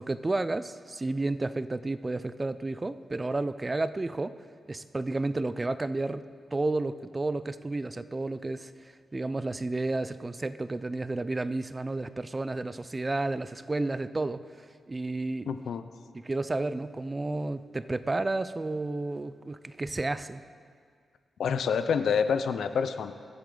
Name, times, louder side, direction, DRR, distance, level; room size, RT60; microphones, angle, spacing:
voice 1, 0.0-4.4 4.7-6.2 6.5-15.5 16.1-20.4, right 2 dB, 25° right, 14 dB, 0.4 m, -31 dB
voice 2, 15.5-15.8 21.4-23.1, left 6 dB, 80° left, 10 dB, 0.6 m, -27 dB
24.0 x 8.1 x 3.9 m, 2.1 s
wide cardioid pair, 110°, 0 cm